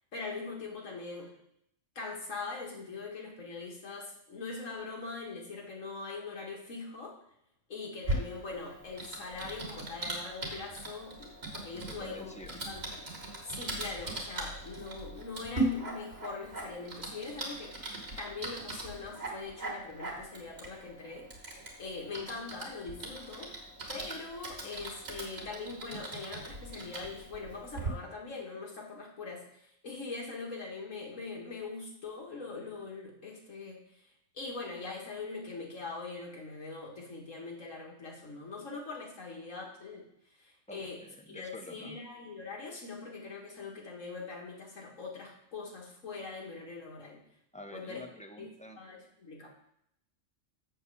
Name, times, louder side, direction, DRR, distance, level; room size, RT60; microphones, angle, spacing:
voice 1, 0.1-1.3 2.0-7.2 7.7-13.1 13.5-17.8 18.2-21.3 21.5-23.5 23.9-33.8 34.3-40.1 40.4-47.2 47.7-48.1 48.4-48.5 48.8-49.5, left 4 dB, 85° left, -1 dB, 2.1 m, -42 dB
Typing, 8.0-27.9, right 1 dB, 55° right, 2.2 m, -39 dB
voice 2, 11.7-12.6 40.7-42.0 47.5-48.8, equal, 10° left, 3 dB, 0.6 m, -48 dB
7.7 x 4.5 x 6.8 m, 0.75 s
omnidirectional pair, 1.3 m